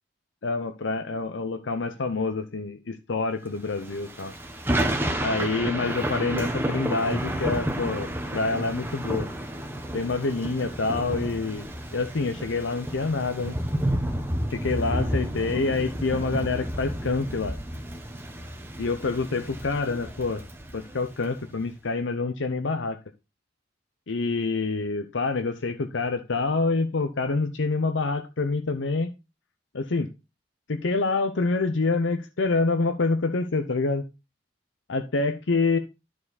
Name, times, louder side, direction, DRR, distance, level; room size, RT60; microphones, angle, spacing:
voice 1, 0.4-4.3 5.2-8.1 8.3-9.3 9.9-13.6 14.5-17.6 18.8-20.4 20.7-23.0 24.1-29.1 29.7-30.1 30.7-34.0 34.9-35.8, left 3 dB, 85° left, 0.7 m, -27 dB
Thunder / Rain, 3.8-21.3, right 1 dB, 10° right, 1.0 m, -31 dB
11.0 x 4.7 x 4.0 m
head